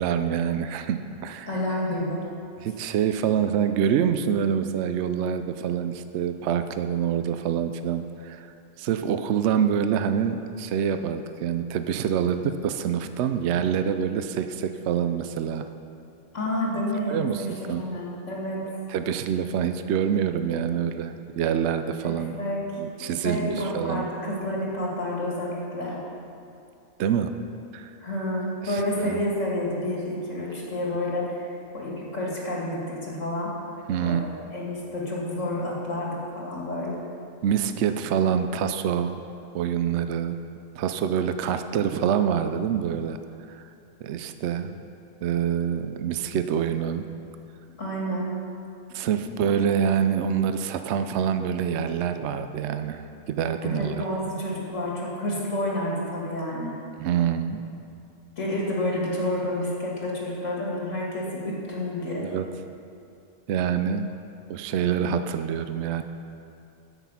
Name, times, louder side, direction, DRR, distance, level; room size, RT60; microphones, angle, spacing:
voice 1, 0.0-1.5 2.6-15.7 17.1-17.8 18.9-22.4 22.8-24.1 27.0-27.3 27.7-27.9 28.6-29.2 33.9-34.3 37.4-39.2 39.5-40.4 40.8-43.2 43.5-43.6 44.0-44.8 45.2-47.1 48.9-54.1 56.9-57.6 62.2-62.4 63.5-64.1 64.5-66.0, right 8 dB, 70° right, 9 dB, 0.8 m, -26 dB
voice 2, 1.5-2.2 16.3-17.5 17.7-18.6 22.0-22.6 23.0-26.0 28.0-31.5 31.7-33.5 34.0-37.1 47.8-48.3 49.2-49.4 53.6-56.7 58.4-62.3, left 1 dB, 80° left, -4 dB, 2.7 m, -29 dB
14.0 x 6.1 x 5.6 m, 2.6 s
omnidirectional pair, 1.3 m